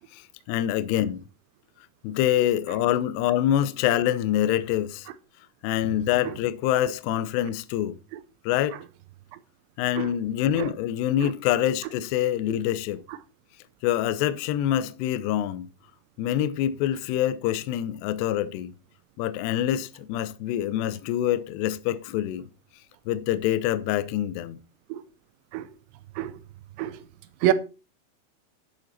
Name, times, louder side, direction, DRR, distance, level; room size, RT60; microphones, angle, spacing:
voice 1, 0.5-1.2 2.0-5.1 5.6-8.0 8.5-8.8 9.8-13.0 13.8-15.7 16.2-18.7 19.2-22.5 23.1-24.6, left 12 dB, 80° left, 2.6 m, -25 dB
voice 2, 6.2-6.3 8.1-8.2 10.0-10.1 10.6-10.7 11.2-11.3 13.1-13.2 24.9-25.0 25.5-25.7 26.2-26.4 26.8-27.0 27.4-27.5, right 13 dB, 80° right, 2.8 m, -27 dB
11.5 x 7.8 x 4.3 m
omnidirectional pair, 5.4 m